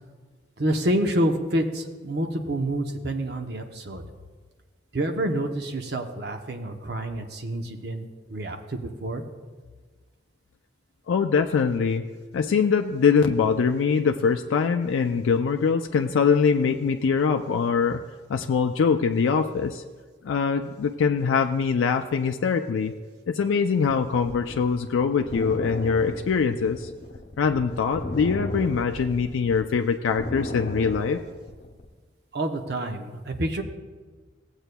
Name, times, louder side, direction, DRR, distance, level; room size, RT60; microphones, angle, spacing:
voice 1, 0.6-4.0 4.9-8.0 8.3-9.2 32.3-33.6, right 1 dB, 55° right, 5 dB, 0.8 m, -28 dB
voice 2, 11.1-12.0 12.3-18.0 18.3-19.8 20.2-22.9 23.3-26.9 27.4-31.2, left 5 dB, 90° left, 5 dB, 0.4 m, -23 dB
sound 1, 24.1-29.6 29.9-31.9, left 1 dB, 55° left, 0.8 m, -35 dB
15.5 x 8.0 x 2.2 m, 1.4 s
head